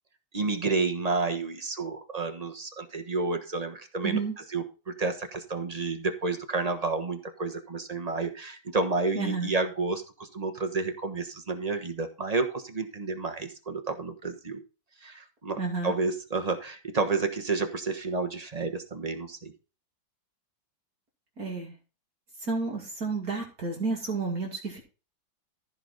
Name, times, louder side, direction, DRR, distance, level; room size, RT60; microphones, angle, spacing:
voice 1, 0.3-14.6 15.0-19.5, right 3 dB, 25° right, 6 dB, 1.1 m, -30 dB
voice 2, 4.0-4.4 9.1-9.5 15.6-15.9 21.4-21.7 22.4-24.8, right 4 dB, 50° right, -2 dB, 2.8 m, -31 dB
14.5 x 5.2 x 4.0 m, 0.33 s
omnidirectional pair, 2.0 m